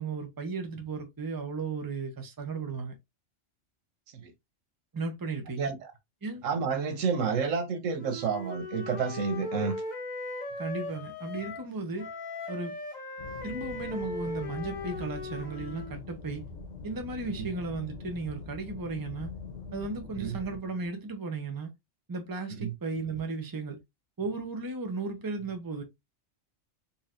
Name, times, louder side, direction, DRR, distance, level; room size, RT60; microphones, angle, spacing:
voice 1, 0.0-2.9 4.9-5.7 6.2-6.5 10.6-12.1 12.5-12.7 13.4-16.5 16.8-19.3 19.7-21.7 22.1-23.8 24.2-25.8, right 3 dB, 20° right, 0.7 m, -35 dB
voice 2, 5.6-5.9 6.4-9.8 17.4-17.5 20.2-20.4 22.6-22.7, right 5 dB, 80° right, 1.2 m, -30 dB
Wind instrument woodwind instrument, 8.0-11.7 12.0-15.9, left 2 dB, 40° left, 0.9 m, -38 dB
sound 1, 13.2-20.6, left 4 dB, 70° left, 1.2 m, -43 dB
4.1 x 2.9 x 2.5 m
omnidirectional pair, 1.3 m